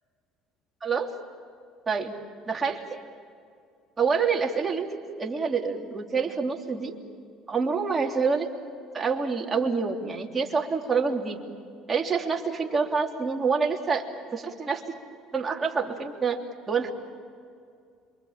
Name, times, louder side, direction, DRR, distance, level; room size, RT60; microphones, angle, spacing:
voice 1, 2.5-3.0 4.0-4.9 5.2-7.0 7.5-8.5 8.9-11.4 11.9-14.0 14.3-15.0 15.3-16.4 16.7-16.9, right 5 dB, 25° right, 0 dB, 3.2 m, -27 dB
27.5 x 24.0 x 7.5 m, 2.3 s
supercardioid pair, 100°, 0 cm